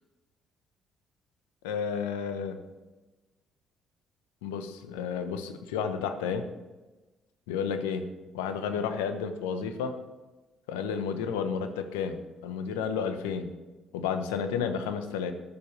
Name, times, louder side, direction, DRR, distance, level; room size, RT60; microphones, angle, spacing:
voice 1, 1.6-2.6 4.4-6.5 7.5-10.0 10.7-13.5 13.9-15.3, left 6 dB, 85° left, 9 dB, 1.0 m, -31 dB
21.0 x 7.4 x 3.3 m, 1.2 s
hypercardioid pair, 50°, 0 cm